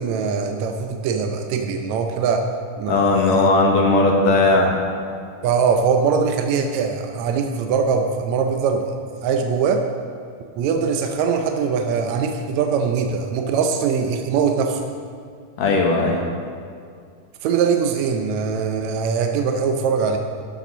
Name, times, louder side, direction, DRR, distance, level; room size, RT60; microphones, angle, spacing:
voice 1, 0.0-2.5 2.8-3.5 5.4-8.9 9.2-9.9 10.6-14.8 17.4-20.2, right 6 dB, 75° right, 4 dB, 1.8 m, -22 dB
voice 2, 2.9-4.8 15.6-16.3, left 2 dB, 65° left, 0 dB, 2.2 m, -17 dB
11.5 x 6.8 x 6.1 m, 2.2 s
omnidirectional pair, 3.6 m